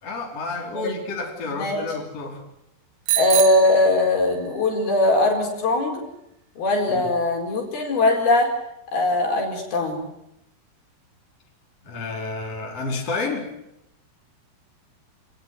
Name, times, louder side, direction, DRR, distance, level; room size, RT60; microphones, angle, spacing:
voice 1, 0.0-2.4 6.9-7.1 11.8-13.5, left 3 dB, 35° left, 0 dB, 5.3 m, -30 dB
Bicycle bell, 3.1-4.6, right 12 dB, 70° right, 3.3 m, -26 dB
voice 2, 3.2-6.0 6.6-8.5 8.9-10.1, left 2 dB, 65° left, 2 dB, 6.3 m, -20 dB
28.0 x 18.5 x 9.5 m, 0.82 s
omnidirectional pair, 4.9 m